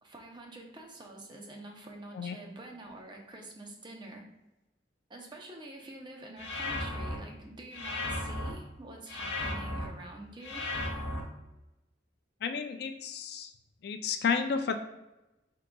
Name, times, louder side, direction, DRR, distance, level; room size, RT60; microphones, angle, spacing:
voice 1, 0.0-4.3 5.1-10.7, right 2 dB, 25° right, 1 dB, 0.6 m, -47 dB
sound 1, 6.4-7.2 7.7-8.5 9.1-9.9 10.4-11.2, left 1 dB, 75° left, 1.0 m, -35 dB
voice 2, 12.4-13.5 13.8-14.8, left 6 dB, 55° left, 7 dB, 0.3 m, -31 dB
4.7 x 3.7 x 2.3 m, 1.0 s
head